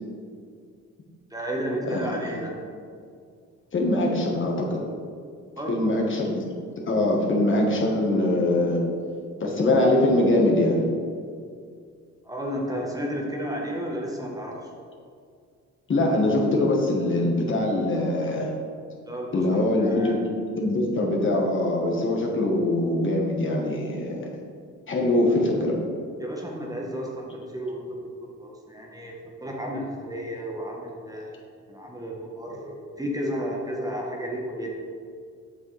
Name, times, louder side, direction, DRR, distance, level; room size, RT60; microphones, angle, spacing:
voice 1, 1.3-2.6 5.6-5.9 12.2-14.7 19.0-20.2 26.2-28.0 28.4-29.1 29.4-31.4 31.7-34.7, equal, 10° right, -2 dB, 1.1 m, -32 dB
voice 2, 3.7-4.8 5.7-6.4 6.9-8.8 9.4-10.8 15.9-18.5 19.3-20.2 20.6-24.3 24.9-25.8, left 1 dB, 40° left, -1 dB, 1.4 m, -23 dB
7.5 x 6.0 x 3.3 m, 2.2 s
cardioid pair, 90°, 30 cm